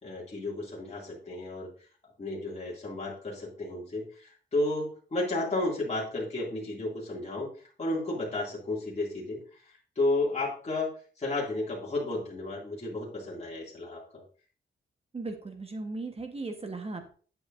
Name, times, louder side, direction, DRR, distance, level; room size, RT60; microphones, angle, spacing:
voice 1, 0.0-1.7 2.2-7.5 7.8-14.2, left 2 dB, 35° left, -5 dB, 2.3 m, -32 dB
voice 2, 15.1-17.1, right 3 dB, 30° right, 6 dB, 1.1 m, -37 dB
9.8 x 7.9 x 2.5 m, 0.42 s
cardioid pair, 95°, 20 cm